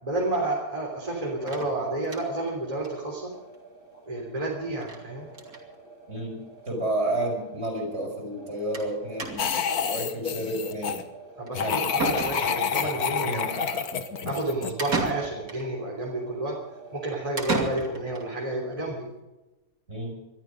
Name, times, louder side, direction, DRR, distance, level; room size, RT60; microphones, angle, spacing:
voice 1, 0.0-3.3 4.1-5.3 11.4-13.8 14.2-16.5 16.9-19.1, right 2 dB, 20° right, -3 dB, 3.4 m, -30 dB
sound 1, 0.6-17.1, right 3 dB, 35° left, 5.6 m, -49 dB
sound 2, 1.5-2.5 2.8-2.9 3.2-3.3 3.5-3.6 4.8-5.0 5.3-5.7 6.5-6.6 6.9-7.0 8.7-8.9 9.2-9.7 11.5-11.6 12.0-12.8 14.8-15.7 17.4-18.3, right 4 dB, 65° right, 3.1 m, -32 dB
voice 2, 6.1-11.0 11.6-11.8 13.2-13.5 19.9-20.2, right 1 dB, 40° right, 2 dB, 5.8 m, -31 dB
sound 3, 9.4-11.0 11.5-15.1, left 7 dB, 70° left, 1.7 m, -28 dB
21.0 x 13.0 x 5.2 m, 1.0 s
omnidirectional pair, 1.7 m